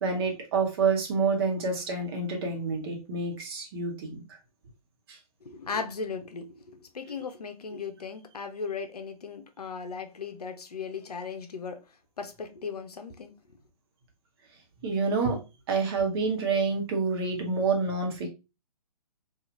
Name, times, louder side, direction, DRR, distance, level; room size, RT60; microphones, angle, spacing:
voice 1, 0.0-4.2 14.8-15.4 15.7-18.3, right 4 dB, 40° right, 0.9 m, -28 dB
voice 2, 5.4-11.8 12.2-13.3, left 5 dB, 80° left, 0.6 m, -37 dB
2.8 x 2.4 x 2.5 m
figure-of-eight pair, 130°, 20 cm